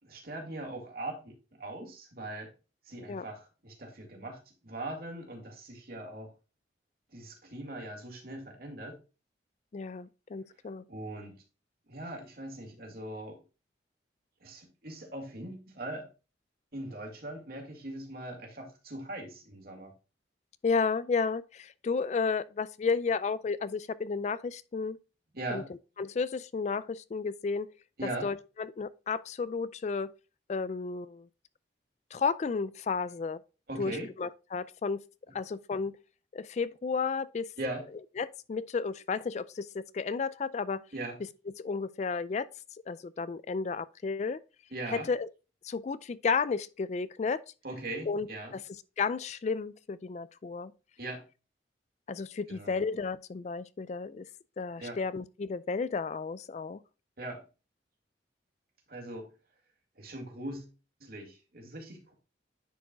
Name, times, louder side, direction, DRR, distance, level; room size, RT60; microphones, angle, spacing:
voice 1, 0.0-2.5 2.9-6.3 7.1-9.0 10.9-11.4 11.9-13.4 14.4-16.1 16.7-19.9 25.3-25.7 28.0-28.3 33.7-34.1 37.6-37.9 40.9-41.2 44.7-45.1 47.6-48.5 51.0-51.2 52.5-52.8 54.8-55.0 57.2-57.4 58.9-59.3 60.0-60.7 61.0-62.1, right 1 dB, 55° right, 2.3 m, -40 dB
voice 2, 9.7-10.8 20.6-25.0 25.5-25.6 26.0-27.7 28.0-30.1 30.5-31.3 32.1-33.4 33.8-35.0 35.3-36.0 36.3-37.5 38.2-40.8 41.6-42.5 42.9-44.4 44.9-45.3 45.6-47.4 48.1-48.3 48.5-48.6 49.0-50.7 52.1-54.3 54.6-56.8, left 5 dB, 40° left, 0.3 m, -32 dB
10.0 x 4.7 x 2.3 m
head